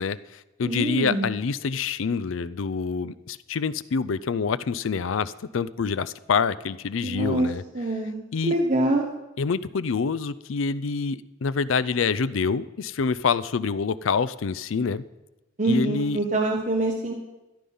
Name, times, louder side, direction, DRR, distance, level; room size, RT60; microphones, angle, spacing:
voice 1, 0.0-7.6 8.3-8.5 9.4-15.0 15.7-16.2, left 5 dB, 85° left, 17 dB, 0.5 m, -26 dB
voice 2, 0.7-1.3 7.0-7.5 7.7-9.1 15.6-17.1, right 2 dB, 40° right, 0 dB, 1.1 m, -25 dB
13.5 x 10.0 x 5.5 m, 1.0 s
head